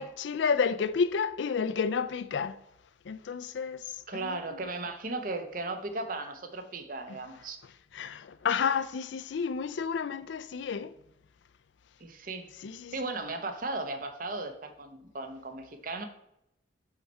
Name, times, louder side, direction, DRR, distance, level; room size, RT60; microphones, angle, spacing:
voice 1, 0.0-2.6 3.0-4.6 7.1-7.2 7.9-10.9 12.6-13.1, left 6 dB, 85° left, 0.4 m, -31 dB
voice 2, 4.1-7.6 12.0-12.5 12.9-16.0, right 2 dB, 50° right, 0.9 m, -36 dB
5.7 x 5.4 x 4.4 m
head